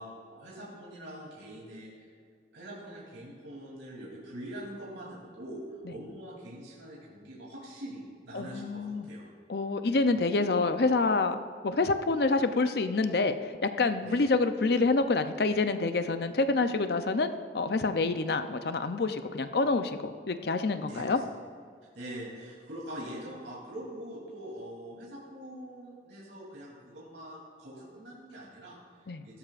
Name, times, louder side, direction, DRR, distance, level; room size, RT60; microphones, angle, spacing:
voice 1, 0.0-2.1 2.5-9.3 14.0-14.2 20.8-21.4 21.9-29.4, right 1 dB, 85° right, -5 dB, 3.1 m, -44 dB
voice 2, 8.3-9.1 9.5-11.4 11.6-21.2 29.1-29.2, left 3 dB, 60° left, 9 dB, 0.6 m, -27 dB
17.0 x 12.5 x 2.5 m, 2.1 s
head